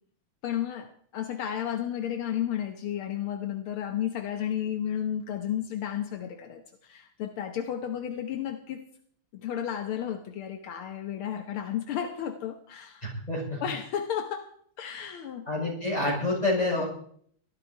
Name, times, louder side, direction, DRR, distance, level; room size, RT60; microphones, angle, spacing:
voice 1, 0.4-8.9 9.3-13.0 13.6-15.5 16.8-16.9, left 10 dB, 75° left, 6 dB, 1.9 m, -33 dB
voice 2, 13.0-13.6 15.5-16.8, left 2 dB, 15° left, -4 dB, 7.2 m, -28 dB
18.0 x 13.0 x 4.6 m, 0.62 s
omnidirectional pair, 2.4 m